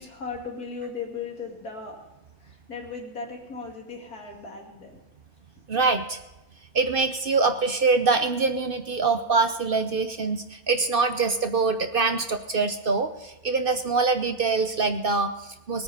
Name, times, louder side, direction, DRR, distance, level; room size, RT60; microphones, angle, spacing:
voice 1, 0.0-2.0 2.4-5.0, left 4 dB, 65° left, 0 dB, 3.0 m, -37 dB
voice 2, 5.7-6.2 6.7-15.8, right 4 dB, 50° right, 8 dB, 0.7 m, -24 dB
19.5 x 9.3 x 5.4 m, 1.0 s
omnidirectional pair, 1.7 m